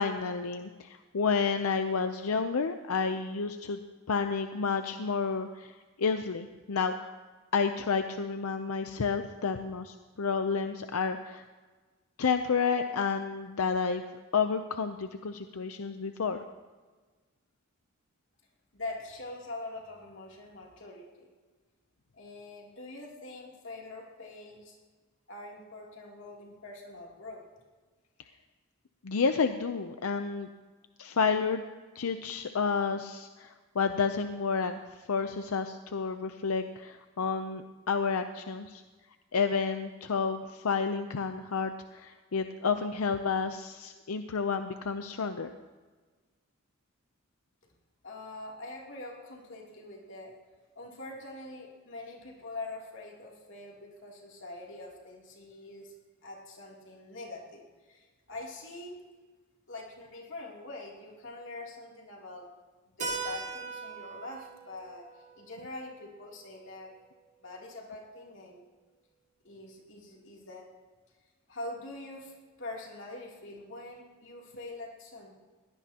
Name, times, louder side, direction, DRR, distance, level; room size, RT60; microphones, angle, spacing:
voice 1, 0.0-7.1 7.5-11.5 12.2-14.0 14.3-16.4 29.0-30.5 31.0-31.6 31.9-34.8 35.1-38.8 39.3-45.5, left 5 dB, 90° left, 8 dB, 0.6 m, -30 dB
voice 2, 18.7-21.3 22.1-24.8 25.3-27.4 48.0-50.3 50.7-55.9 56.2-59.0 59.7-62.5 63.0-66.9 67.4-68.6 69.4-70.7 71.5-75.3, left 2 dB, 60° left, -2 dB, 3.0 m, -44 dB
Keyboard (musical), 63.0-67.5, right 4 dB, 35° right, 2.1 m, -41 dB
21.5 x 17.0 x 2.9 m, 1.4 s
head